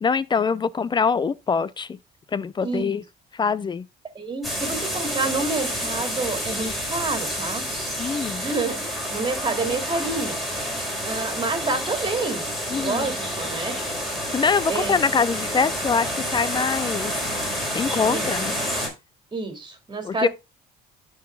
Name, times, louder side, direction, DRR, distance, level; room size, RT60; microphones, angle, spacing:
voice 1, 0.0-2.0 2.3-3.0 3.3-3.9 8.0-8.4 12.7-13.1 14.3-17.1 17.7-18.6 20.0-20.3, left 5 dB, 25° left, 0.5 m, -24 dB
voice 2, 2.6-3.0 4.1-7.7 8.4-10.4 11.0-12.4 12.7-13.8 14.7-14.9 18.1-18.3 19.3-20.3, right 3 dB, 25° right, 2.8 m, -28 dB
sound 1, 4.4-18.9, equal, ahead, 4.3 m, -29 dB
13.0 x 4.9 x 2.3 m
cardioid pair, 110°, 17 cm